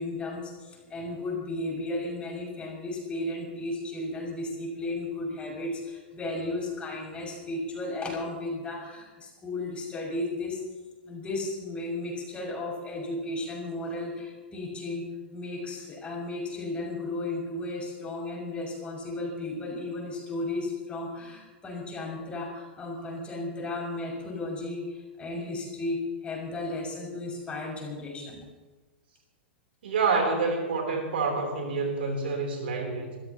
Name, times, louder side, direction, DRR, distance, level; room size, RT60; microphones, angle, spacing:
voice 1, 0.0-10.6 11.0-28.4, left 2 dB, 20° left, -2 dB, 6.4 m, -34 dB
voice 2, 29.8-33.2, right 4 dB, 70° right, 2 dB, 3.5 m, -27 dB
26.5 x 14.5 x 3.0 m, 1.2 s
hypercardioid pair, 105°, 6 cm